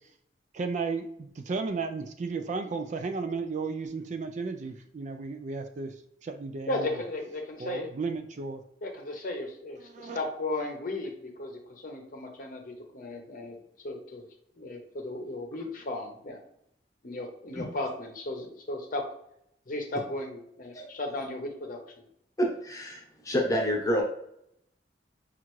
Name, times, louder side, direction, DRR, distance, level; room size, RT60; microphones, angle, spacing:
voice 1, 0.5-5.9 6.2-7.0 7.6-8.6 9.9-10.2, right 4 dB, 45° right, 7 dB, 0.4 m, -34 dB
voice 2, 6.7-7.9 8.8-13.6 13.8-14.2 14.6-16.4 17.0-19.1 19.7-21.8, left 2 dB, 50° left, 3 dB, 0.8 m, -35 dB
voice 3, 22.4-24.0, equal, 20° left, -1 dB, 0.9 m, -28 dB
5.5 x 2.5 x 3.0 m, 0.73 s
head